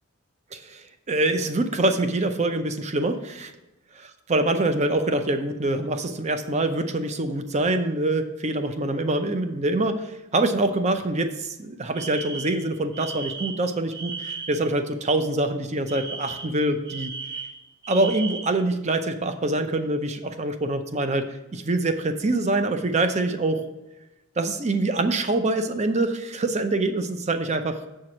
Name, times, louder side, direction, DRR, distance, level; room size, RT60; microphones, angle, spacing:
voice 1, 0.5-3.5 4.3-17.1 17.9-23.7 24.4-27.8, right 2 dB, 30° right, 8 dB, 0.6 m, -25 dB
Alarm, 11.9-14.7 15.9-18.6, right 5 dB, 50° right, 1.4 m, -36 dB
7.5 x 4.6 x 5.8 m, 1.0 s
head